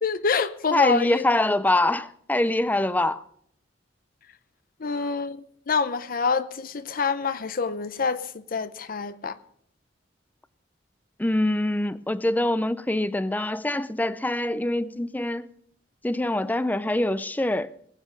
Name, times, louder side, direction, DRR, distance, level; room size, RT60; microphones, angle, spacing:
voice 1, 0.0-1.2 4.8-9.4, left 5 dB, 50° left, 0.6 m, -26 dB
voice 2, 0.7-3.2 11.2-15.5 16.0-17.7, left 1 dB, 10° left, 0.5 m, -24 dB
19.0 x 8.7 x 5.2 m
head